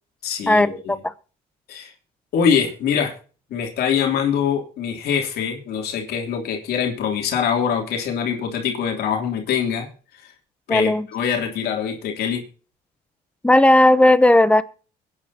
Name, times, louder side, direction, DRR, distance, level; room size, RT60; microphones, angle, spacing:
voice 1, 0.2-1.0 1.7-1.9 2.3-3.1 3.5-9.9 10.1-10.3 10.7-12.4, left 7 dB, 70° left, 1 dB, 3.1 m, -23 dB
voice 2, 10.7-11.1 13.4-14.6, left 1 dB, 5° left, 14 dB, 0.9 m, -14 dB
23.5 x 9.6 x 2.8 m, 0.38 s
cardioid pair, 110°, 17 cm